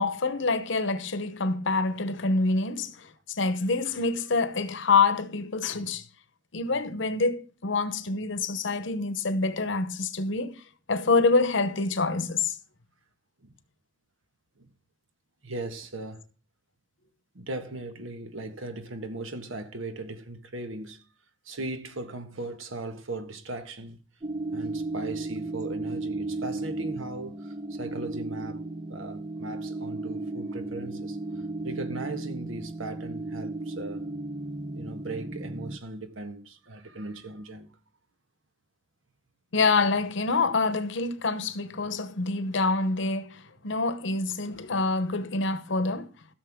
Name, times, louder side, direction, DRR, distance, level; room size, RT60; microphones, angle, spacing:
voice 1, 0.0-6.0 6.5-10.6 10.9-12.6 39.5-46.1, left 3 dB, 65° left, 0.9 m, -26 dB
voice 2, 15.4-16.2 17.3-21.0 21.4-24.0 24.5-28.6 28.9-31.2 31.6-34.1 34.7-37.7, right 2 dB, 90° right, 1.5 m, -38 dB
sound 1, 24.2-35.8, right 2 dB, 25° right, 0.6 m, -35 dB
15.0 x 6.7 x 3.6 m
head